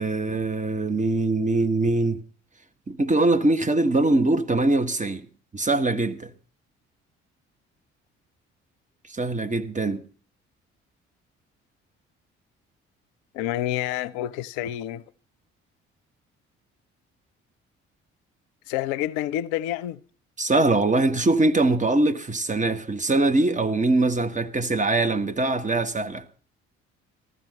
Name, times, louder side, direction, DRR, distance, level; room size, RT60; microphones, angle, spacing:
voice 1, 0.0-2.2 2.9-5.3 5.5-6.3 9.1-10.0 20.4-26.2, right 2 dB, 20° right, 1.4 m, -22 dB
voice 2, 13.3-15.0 18.7-20.0, left 13 dB, 65° left, 0.6 m, -28 dB
15.0 x 12.5 x 5.3 m
figure-of-eight pair, 45°, 34 cm